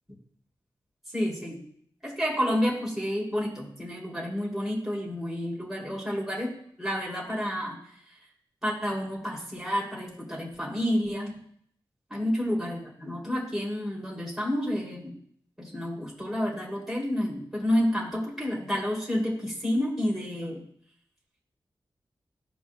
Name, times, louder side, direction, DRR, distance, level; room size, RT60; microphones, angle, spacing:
voice 1, 1.1-1.6 2.0-7.8 8.6-11.4 12.1-15.1 15.6-20.6, equal, 5° right, -5 dB, 3.1 m, -30 dB
15.0 x 5.2 x 2.3 m, 0.65 s
cardioid pair, 40°, 9 cm